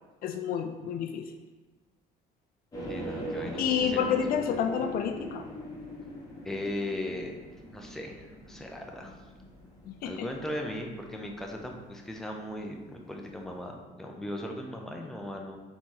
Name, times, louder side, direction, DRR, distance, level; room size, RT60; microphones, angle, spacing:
voice 1, 0.2-1.3 3.6-5.4 9.9-10.3, left 7 dB, 60° left, 6 dB, 0.4 m, -29 dB
sound 1, 2.7-12.8 13.1-13.2 13.5-13.6, equal, 20° left, 1.1 m, -42 dB
voice 2, 2.9-4.2 6.4-7.3 7.7-9.1 10.0-15.6, left 1 dB, ahead, 1 dB, 0.5 m, -38 dB
3.9 x 3.0 x 3.8 m, 1.3 s
cardioid pair, 110°, 17 cm